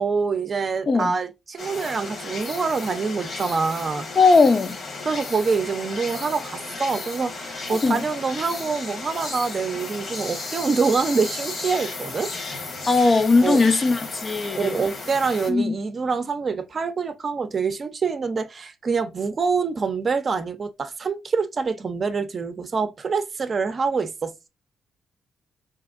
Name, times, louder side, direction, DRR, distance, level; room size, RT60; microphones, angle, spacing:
voice 1, 0.0-4.1 5.0-12.3 13.4-13.6 14.5-24.5, right 5 dB, 40° right, 0.6 m, -25 dB
sound 1, 1.6-15.5, left 3 dB, 55° left, 1.2 m, -34 dB
voice 2, 4.2-4.8 7.8-8.0 12.9-14.8 15.5-15.7, left 3 dB, 35° left, 0.5 m, -18 dB
4.3 x 2.8 x 2.4 m
cardioid pair, 100°, 0 cm